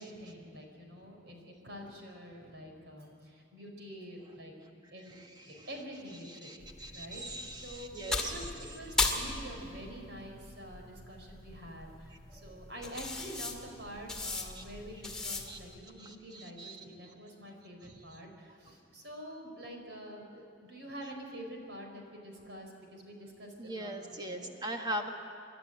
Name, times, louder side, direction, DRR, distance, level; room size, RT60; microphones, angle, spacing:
voice 1, 0.0-4.5 4.9-6.7 6.9-7.2 7.5-24.5, equal, 75° right, 2 dB, 4.5 m, -47 dB
voice 2, 5.2-5.7 6.2-8.3 14.5-14.6 15.5-15.6 16.0-16.8 17.8-17.9 23.6-25.1, right 1 dB, 25° right, 3 dB, 1.7 m, -41 dB
sound 1, 6.6-15.7, left 2 dB, 5° left, 2.0 m, -38 dB
27.0 x 12.0 x 9.7 m, 2.5 s
head